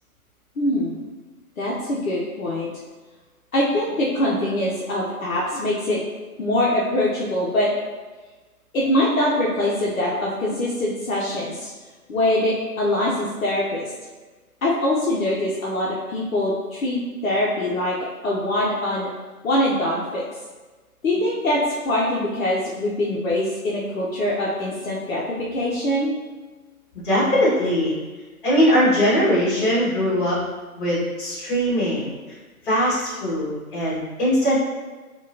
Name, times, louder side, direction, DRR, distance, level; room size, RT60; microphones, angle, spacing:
voice 1, 0.6-1.0 1.6-2.8 3.5-6.0 6.4-7.7 8.7-11.7 12.1-13.9 14.6-18.0 18.2-19.1 19.4-20.2 21.0-26.1, left 1 dB, 65° left, -5 dB, 0.7 m, -23 dB
voice 2, 27.0-27.9 28.4-30.4 30.8-32.2 32.6-34.6, equal, 35° left, -7 dB, 1.4 m, -20 dB
4.4 x 2.3 x 2.7 m, 1.3 s
figure-of-eight pair, 140°, 45 cm